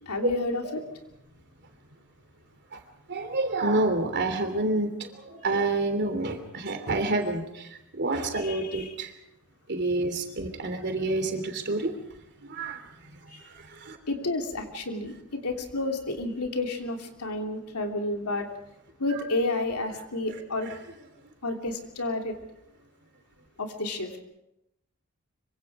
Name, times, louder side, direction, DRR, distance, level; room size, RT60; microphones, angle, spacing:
voice 1, 0.0-0.8 8.3-8.9 13.3-13.5 14.1-18.5 19.0-20.7 21.4-22.4 23.6-24.1, left 2 dB, 90° left, 3 dB, 3.2 m, -31 dB
voice 2, 3.1-9.1 9.7-11.9 12.4-12.8 13.4-14.0 19.1-19.2, right 2 dB, 50° right, 7 dB, 3.1 m, -28 dB
25.0 x 24.0 x 4.9 m, 0.83 s
head